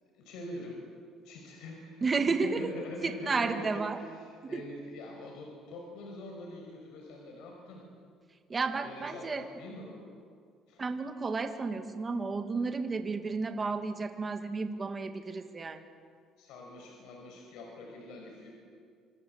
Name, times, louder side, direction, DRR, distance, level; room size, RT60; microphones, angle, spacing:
voice 1, 0.1-0.8 1.2-1.9 2.2-3.9 4.2-7.8 8.8-10.0 10.7-10.8 15.3-15.4 16.4-18.5, left 1 dB, 80° left, 1 dB, 5.6 m, -44 dB
voice 2, 2.0-2.7 3.0-4.0 4.4-4.6 8.5-9.4 10.8-15.8, right 4 dB, 20° right, 6 dB, 2.1 m, -32 dB
27.0 x 26.0 x 8.0 m, 2.1 s
cardioid pair, 155°, 0 cm